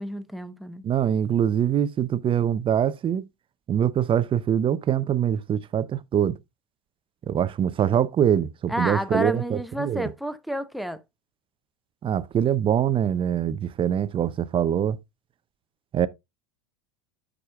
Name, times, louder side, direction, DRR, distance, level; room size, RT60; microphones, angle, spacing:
voice 1, 0.0-0.8 8.7-11.0, equal, ahead, 0.8 m, -30 dB
voice 2, 0.8-3.3 3.7-6.4 7.3-10.1 12.0-15.0 15.9-16.1, right 9 dB, 30° right, 0.6 m, -24 dB
13.0 x 5.0 x 2.3 m
hypercardioid pair, 90°, 18 cm